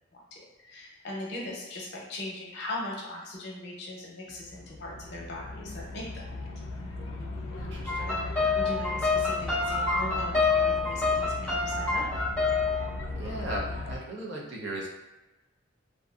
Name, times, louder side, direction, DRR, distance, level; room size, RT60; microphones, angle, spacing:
voice 1, 0.6-6.2 8.1-12.0, left 1 dB, 55° left, -2 dB, 0.7 m, -39 dB
sound 1, 4.3-14.0, left 2 dB, 90° left, 0.4 m, -36 dB
voice 2, 7.6-8.1 13.1-14.9, right 2 dB, 60° right, -3 dB, 0.6 m, -37 dB
sound 2, 7.9-12.9, left 4 dB, 5° left, 0.5 m, -27 dB
2.6 x 2.5 x 2.3 m, 1.1 s
head